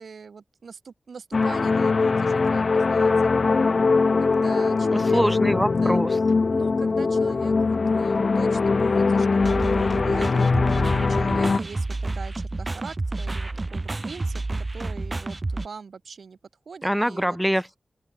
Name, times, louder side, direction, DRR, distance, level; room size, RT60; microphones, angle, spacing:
voice 1, 0.0-3.3 4.2-5.2 5.6-6.0 6.5-16.4 16.6-17.4, right 5 dB, 90° right, 6.5 m, -42 dB
sound 1, 1.3-11.6, left 4 dB, 55° left, 0.6 m, -21 dB
voice 2, 4.9-6.2 16.8-17.8, equal, ahead, 0.7 m, -24 dB
sound 2, 9.4-15.7, right 2 dB, 35° right, 0.3 m, -30 dB
open air
wide cardioid pair, 110°, 0 cm